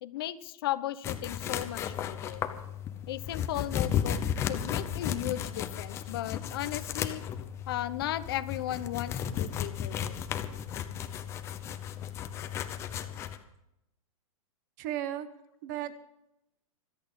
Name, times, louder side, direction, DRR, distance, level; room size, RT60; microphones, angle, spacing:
voice 1, 0.0-2.4 3.1-4.2 4.5-7.2 7.7-10.1, left 13 dB, 40° left, 13 dB, 1.0 m, -35 dB
sound 1, 1.0-13.4, left 9 dB, 15° left, 0.8 m, -34 dB
voice 2, 14.8-15.3 15.6-15.9, right 12 dB, 30° right, 13 dB, 1.0 m, -34 dB
25.0 x 8.6 x 5.5 m, 0.85 s
hypercardioid pair, 170°, 18 cm